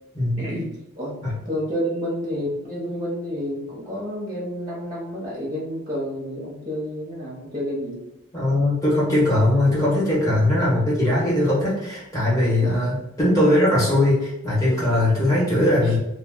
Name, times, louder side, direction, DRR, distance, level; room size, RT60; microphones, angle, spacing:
voice 1, 0.4-8.0 12.6-12.8 15.8-16.0, equal, 20° right, -6 dB, 0.8 m, -30 dB
voice 2, 8.3-16.0, left 1 dB, 15° left, -8 dB, 1.2 m, -20 dB
2.3 x 2.3 x 3.5 m, 0.90 s
head